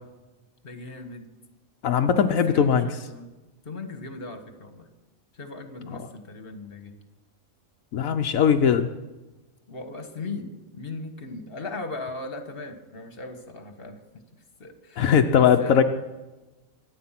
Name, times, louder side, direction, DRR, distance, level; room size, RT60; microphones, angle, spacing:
voice 1, 0.6-1.3 2.3-3.3 3.7-4.9 5.3-6.9 9.7-14.0 14.6-15.8, left 2 dB, 45° left, 7 dB, 1.8 m, -38 dB
voice 2, 1.8-2.9 7.9-8.9 15.0-15.8, left 7 dB, 85° left, 6 dB, 1.2 m, -20 dB
24.0 x 8.9 x 5.9 m, 1.1 s
omnidirectional pair, 1.4 m